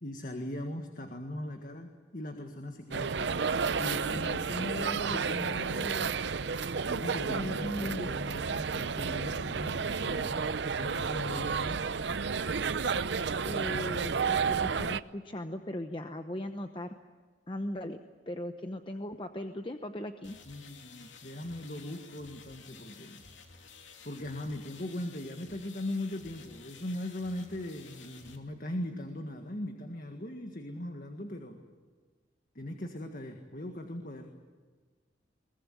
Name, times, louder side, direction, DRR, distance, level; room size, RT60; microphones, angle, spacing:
voice 1, 0.0-3.5 3.8-10.4 10.8-11.8 20.5-23.2 24.0-31.6 32.6-34.3, left 1 dB, 45° left, 4 dB, 1.8 m, -39 dB
sound 1, 2.9-15.0, right 5 dB, 70° right, 0.6 m, -31 dB
voice 2, 7.3-8.1 13.4-16.9 17.5-18.0 18.3-20.4, left 1 dB, 25° left, 7 dB, 0.9 m, -38 dB
sound 2, 20.2-28.4, left 5 dB, 85° left, 3.0 m, -53 dB
22.5 x 20.0 x 9.8 m, 1.5 s
head